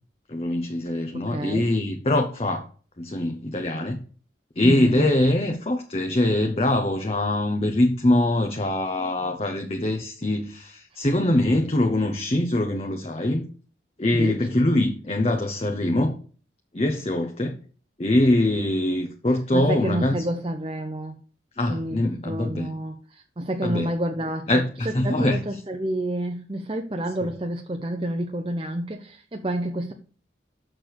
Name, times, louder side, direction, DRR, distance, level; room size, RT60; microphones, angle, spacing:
voice 1, 0.3-2.6 3.0-4.0 4.6-13.4 14.0-16.1 16.7-17.5 18.0-20.3 21.6-22.7 23.6-23.9 24.5-25.6, left 1 dB, 35° left, 0.8 m, -23 dB
voice 2, 1.3-1.6 4.6-5.1 14.1-14.3 19.5-21.1 21.7-22.0 22.2-23.0 23.4-24.5 25.0-29.9, right 1 dB, 30° right, 0.7 m, -29 dB
6.6 x 6.3 x 6.1 m
head